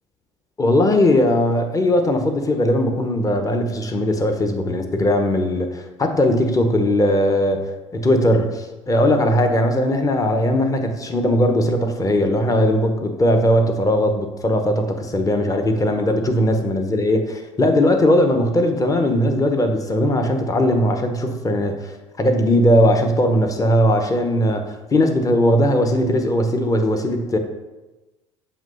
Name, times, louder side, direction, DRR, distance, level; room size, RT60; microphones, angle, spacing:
voice 1, 0.6-7.7 7.9-21.9 22.2-27.4, left 1 dB, 25° left, 5 dB, 0.9 m, -19 dB
7.3 x 3.1 x 5.4 m, 1.1 s
hypercardioid pair, 70°, 15 cm